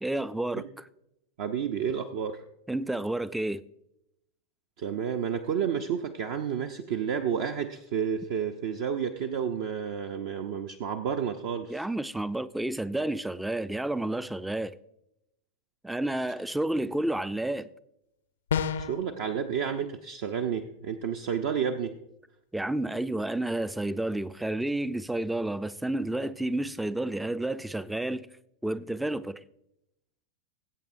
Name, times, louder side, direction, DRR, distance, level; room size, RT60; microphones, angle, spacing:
voice 1, 0.0-0.6 2.7-3.6 11.7-14.8 15.8-17.7 22.5-28.3 28.6-29.4, right 1 dB, 5° right, 0.4 m, -30 dB
voice 2, 1.4-2.4 4.8-11.9 18.8-22.0, right 7 dB, 50° right, 0.6 m, -31 dB
sound 1, 18.5-19.0, left 7 dB, 65° left, 0.5 m, -28 dB
20.5 x 8.5 x 2.6 m
figure-of-eight pair, 90°, 0 cm